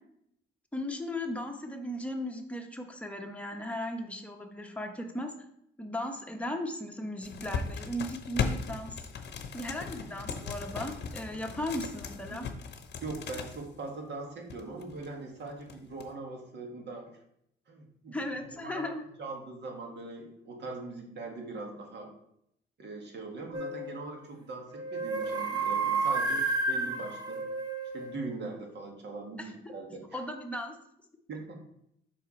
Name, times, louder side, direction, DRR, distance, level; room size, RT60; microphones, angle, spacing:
voice 1, 0.7-5.3 5.8-9.0 9.5-12.5 18.1-19.0 29.4-29.7 30.1-30.8, left 1 dB, 5° left, 2 dB, 1.0 m, -37 dB
sound 1, 7.2-13.6 14.5-15.1 15.5-16.1, left 5 dB, 60° left, 0.8 m, -37 dB
voice 2, 13.0-17.1 17.7-22.1 22.8-27.4 27.9-30.2 31.3-31.6, right 3 dB, 60° right, 1 dB, 1.7 m, -41 dB
sound 2, 23.5-23.9 24.7-28.2, right 3 dB, 20° right, 0.8 m, -31 dB
5.7 x 4.6 x 4.3 m, 0.73 s
cardioid pair, 90°, 20 cm